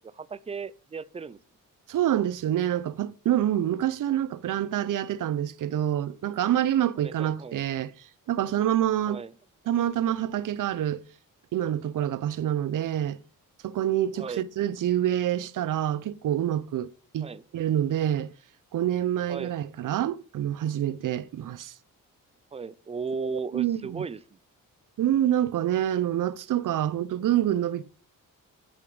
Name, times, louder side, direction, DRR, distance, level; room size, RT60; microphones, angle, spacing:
voice 1, 0.0-1.4 7.0-7.6 9.1-9.3 14.2-14.4 17.2-17.4 19.3-19.5 22.5-24.2, right 5 dB, 20° right, 0.4 m, -36 dB
voice 2, 1.9-7.9 8.3-9.2 9.7-11.0 11.5-13.2 13.6-18.3 18.7-21.7 23.5-24.1 25.0-27.8, right 11 dB, 65° right, 0.7 m, -27 dB
8.9 x 8.4 x 5.0 m
wide cardioid pair, 155°, 34 cm